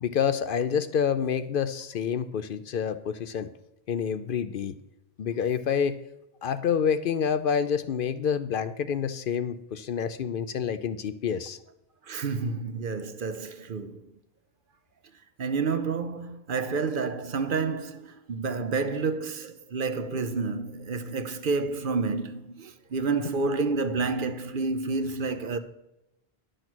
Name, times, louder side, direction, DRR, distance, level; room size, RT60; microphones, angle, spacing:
voice 1, 0.0-3.5 3.9-4.8 5.2-6.0 6.4-11.6, left 7 dB, 60° left, 0.7 m, -28 dB
voice 2, 12.1-14.0 15.4-25.6, right 4 dB, 60° right, 0.8 m, -29 dB
11.0 x 6.4 x 6.1 m
omnidirectional pair, 1.0 m